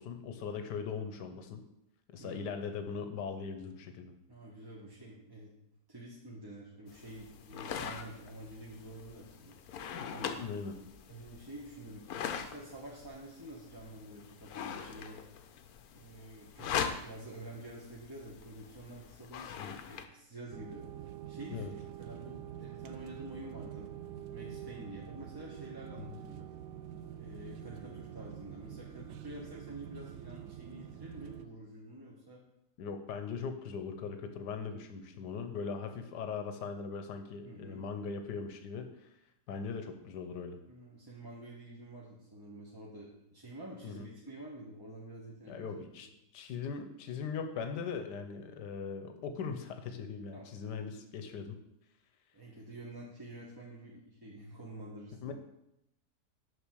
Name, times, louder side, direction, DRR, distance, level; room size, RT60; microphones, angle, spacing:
voice 1, 0.0-1.6 2.1-4.1 10.4-10.7 19.5-19.7 21.5-21.7 26.1-26.2 32.8-38.9 39.5-40.6 43.8-44.1 45.5-51.6 55.2-55.3, left 5 dB, 90° left, 7 dB, 1.4 m, -40 dB
voice 2, 2.2-2.5 4.3-5.5 5.9-9.6 10.1-10.4 11.1-15.2 15.9-20.8 21.3-23.9 24.3-26.5 27.2-32.4 37.4-37.9 40.7-45.6 46.0-46.1 50.3-50.5 52.3-55.3, right 1 dB, 15° right, -3 dB, 0.9 m, -48 dB
sound 1, 6.9-20.0, left 7 dB, 70° left, 1.1 m, -42 dB
sound 2, 20.5-31.5, right 10 dB, 90° right, 1.2 m, -46 dB
6.6 x 5.5 x 6.3 m, 0.83 s
omnidirectional pair, 1.8 m